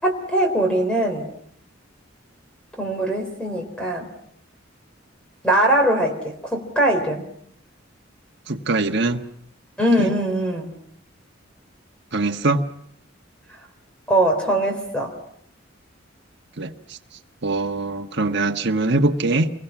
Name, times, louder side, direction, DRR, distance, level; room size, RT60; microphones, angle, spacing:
voice 1, 0.0-1.3 2.8-4.1 5.4-7.2 9.8-10.7 14.1-15.1, right 1 dB, 5° left, 2 dB, 3.8 m, -21 dB
voice 2, 8.5-9.2 10.0-10.1 12.1-12.6 16.6-17.0 17.4-19.5, right 2 dB, 60° right, 4 dB, 1.4 m, -22 dB
28.5 x 23.0 x 6.1 m, 0.68 s
head